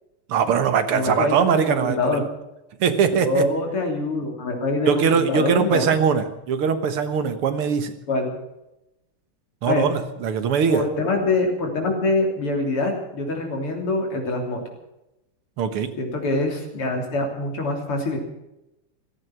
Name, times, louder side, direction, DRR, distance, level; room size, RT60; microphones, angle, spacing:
voice 1, 0.3-2.3 2.8-3.5 4.8-7.9 9.6-10.8 15.6-15.9, right 7 dB, 85° right, 10 dB, 2.3 m, -21 dB
voice 2, 0.9-2.2 3.1-5.9 8.1-8.4 9.7-9.9 10.7-14.6 16.0-18.2, left 2 dB, 85° left, 2 dB, 4.2 m, -24 dB
16.0 x 14.5 x 6.0 m, 0.91 s
omnidirectional pair, 2.4 m